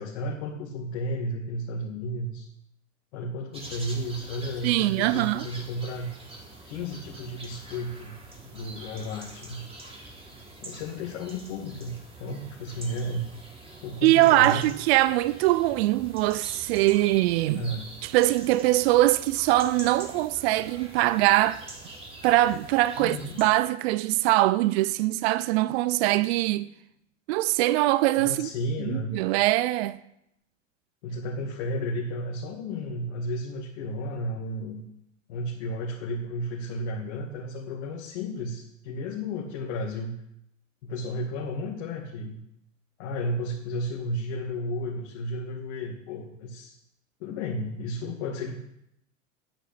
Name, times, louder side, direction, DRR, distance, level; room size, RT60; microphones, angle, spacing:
voice 1, 0.0-2.5 3.1-6.1 6.6-8.2 8.5-9.6 10.6-11.9 12.2-13.3 13.8-14.7 17.5-17.9 23.0-23.4 28.2-29.2 31.0-34.8 35.3-40.1 40.8-42.4 43.0-46.7 47.2-48.6, left 1 dB, 55° left, 2.5 m, -33 dB
sound 1, 3.5-23.5, right 2 dB, 15° right, 3.8 m, -45 dB
voice 2, 4.6-5.5 14.0-17.6 18.0-21.6 22.2-26.7 27.3-28.5 28.8-30.0, right 17 dB, 50° right, 0.6 m, -22 dB
9.5 x 9.1 x 8.2 m
hypercardioid pair, 90°, 40 cm